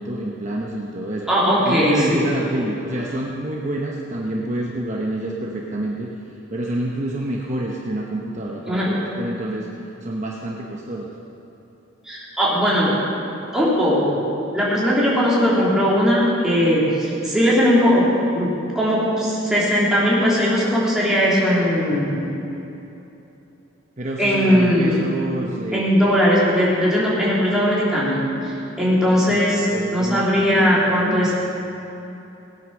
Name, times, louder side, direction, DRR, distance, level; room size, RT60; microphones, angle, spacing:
voice 1, 0.0-1.3 1.7-6.1 6.5-9.7 10.0-11.1 24.0-26.2 29.1-31.3, right 1 dB, 35° right, -2 dB, 1.0 m, -28 dB
voice 2, 1.3-2.3 8.7-8.9 12.0-13.0 13.5-14.2 14.5-22.2 24.2-25.0 25.7-29.7 29.9-31.4, equal, 5° right, -7 dB, 3.1 m, -19 dB
17.5 x 8.9 x 6.4 m, 3.0 s
head